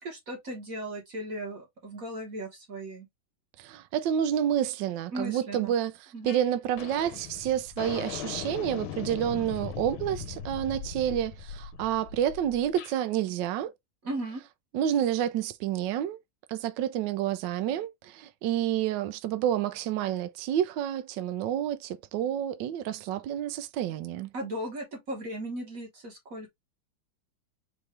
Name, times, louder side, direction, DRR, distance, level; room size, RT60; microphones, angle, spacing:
voice 1, 0.0-3.1 5.1-5.7 6.1-6.4 14.0-14.4 24.3-26.5, right 1 dB, 45° right, 1.8 m, -37 dB
voice 2, 3.6-5.9 6.2-13.7 14.7-16.2 16.5-24.3, right 10 dB, 75° right, 1.1 m, -29 dB
sound 1, 6.3-6.5 6.8-13.0, left 8 dB, 80° left, 1.6 m, -39 dB
4.8 x 2.7 x 3.2 m
omnidirectional pair, 2.2 m